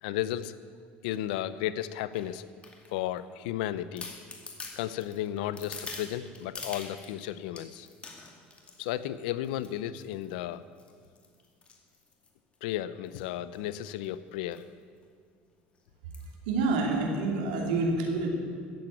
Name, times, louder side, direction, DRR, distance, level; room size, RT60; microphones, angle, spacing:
voice 1, 0.0-0.6 1.0-2.5 2.9-4.1 4.7-7.9 8.8-10.6 12.6-14.7, left 12 dB, 85° left, 15 dB, 0.6 m, -34 dB
sound 1, 1.1-1.4 2.1-3.2 3.6-3.7 4.0-7.2 7.6-9.0 9.4-9.7 10.0-10.3 10.8-12.6 13.1-13.3 13.5-13.6 13.8-14.1 14.5-14.7 15.0-15.1 16.1-16.4 16.9-17.0, left 4 dB, 25° left, 2.3 m, -45 dB
voice 2, 16.5-18.3, right 3 dB, 90° right, 1 dB, 2.9 m, -27 dB
14.5 x 7.8 x 8.9 m, 2.1 s
supercardioid pair, 105°, 5 cm